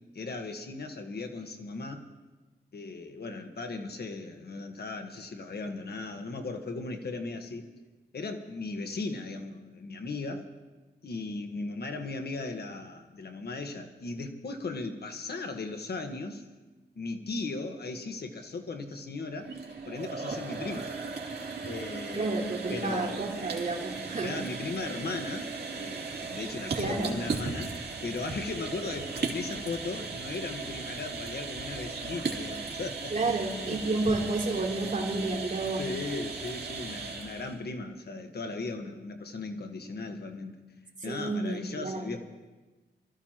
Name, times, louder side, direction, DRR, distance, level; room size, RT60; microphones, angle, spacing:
voice 1, 0.1-2.0 2.7-7.7 8.1-10.5 11.0-16.4 16.9-19.5 19.8-20.9 21.6-22.4 22.7-23.3 24.2-33.4 33.7-33.8 35.8-40.6 41.0-42.2, left 3 dB, 65° left, 6 dB, 1.4 m, -37 dB
sound 1, 19.3-37.6, right 4 dB, 65° right, 2.6 m, -37 dB
voice 2, 22.1-24.4 26.8-27.1 33.1-35.8 41.0-42.1, right 3 dB, 45° right, -1 dB, 3.2 m, -30 dB
25.5 x 14.5 x 3.0 m, 1.2 s
cardioid pair, 75°, 18 cm